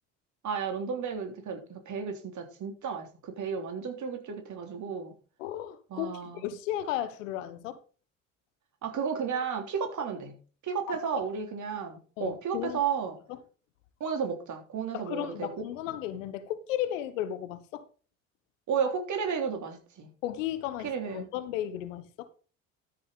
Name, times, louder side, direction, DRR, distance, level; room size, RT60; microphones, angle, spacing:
voice 1, 0.4-5.1 5.9-6.4 8.8-10.3 10.6-13.2 14.0-15.5 18.7-20.1 20.8-21.3, right 6 dB, 50° right, 3.4 m, -33 dB
voice 2, 5.4-7.8 10.9-11.2 12.2-12.8 13.3-13.4 14.9-17.9 20.2-22.3, left 12 dB, 75° left, 1.1 m, -35 dB
13.0 x 6.8 x 4.0 m
hypercardioid pair, 60°, 39 cm